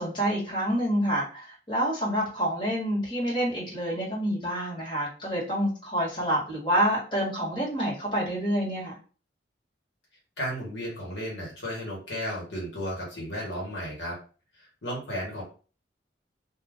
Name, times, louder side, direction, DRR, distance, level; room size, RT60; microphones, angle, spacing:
voice 1, 0.0-8.9, equal, 30° left, -5 dB, 1.4 m, -27 dB
voice 2, 10.4-14.2 14.5-15.4, equal, 70° left, -3 dB, 1.2 m, -34 dB
2.4 x 2.4 x 3.4 m, 0.37 s
head